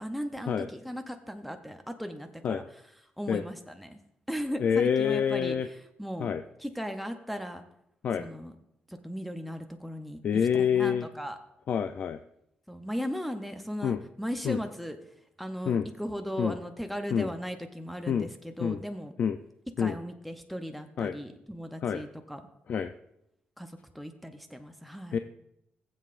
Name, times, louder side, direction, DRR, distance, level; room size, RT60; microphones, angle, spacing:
voice 1, 0.0-2.6 3.2-4.0 4.3-6.3 6.6-7.6 8.2-8.5 8.9-10.2 10.6-11.4 12.7-15.0 15.4-19.1 19.8-22.4 23.6-25.2, equal, ahead, 5 dB, 0.6 m, -37 dB
voice 2, 4.6-5.7 6.2-6.4 8.0-8.3 10.2-11.1 11.7-12.2 13.8-14.0 14.4-14.6 15.7-15.9 16.4-16.6 17.1-17.3 18.1-18.3 18.6-18.8 19.2-19.4 19.8-20.0 21.0-21.1 21.8-22.0 22.7-22.9 25.1-25.2, left 7 dB, 55° left, 8 dB, 0.4 m, -27 dB
19.0 x 7.6 x 2.5 m, 0.80 s
cardioid pair, 130°, 3 cm